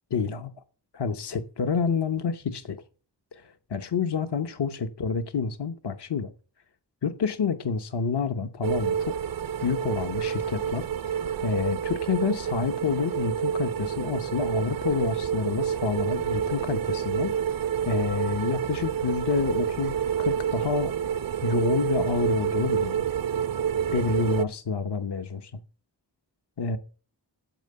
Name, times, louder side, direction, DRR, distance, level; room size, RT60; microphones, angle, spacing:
voice 1, 0.1-0.5 0.9-2.8 3.3-6.3 7.0-9.1 9.6-17.3 17.9-21.0 21.4-23.1 23.9-25.5 26.6-26.8, left 5 dB, 65° left, 0.9 m, -28 dB
sound 1, 8.6-24.4, right 8 dB, 55° right, 0.5 m, -28 dB
9.0 x 7.4 x 6.7 m
cardioid pair, 40°, 43 cm